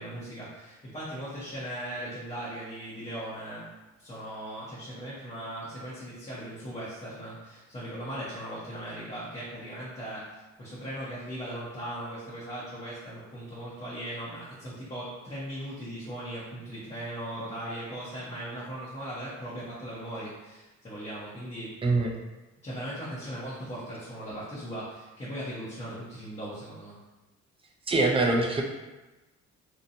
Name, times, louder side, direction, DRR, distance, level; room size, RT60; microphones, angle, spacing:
voice 1, 0.0-3.7 4.0-21.8 22.6-27.0, right 1 dB, 20° left, -9 dB, 0.8 m, -38 dB
voice 2, 27.9-28.6, right 2 dB, 20° right, 0 dB, 0.4 m, -23 dB
2.8 x 2.1 x 2.6 m, 1.1 s
cardioid pair, 90°, 30 cm